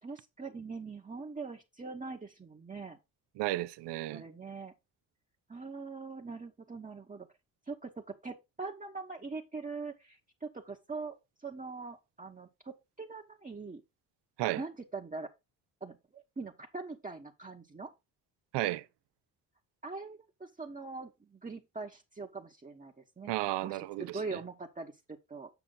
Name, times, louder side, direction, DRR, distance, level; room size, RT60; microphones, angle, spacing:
voice 1, 0.0-3.0 4.1-4.7 5.5-7.3 7.7-13.8 14.5-15.3 15.8-17.9 19.8-23.3 23.6-24.9 25.3-25.5, right 4 dB, 20° right, 1.1 m, -42 dB
voice 2, 3.4-4.2 14.4-14.6 18.5-18.9 23.3-24.4, right 16 dB, 70° right, 0.7 m, -33 dB
8.1 x 5.6 x 3.9 m
hypercardioid pair, 55°, 43 cm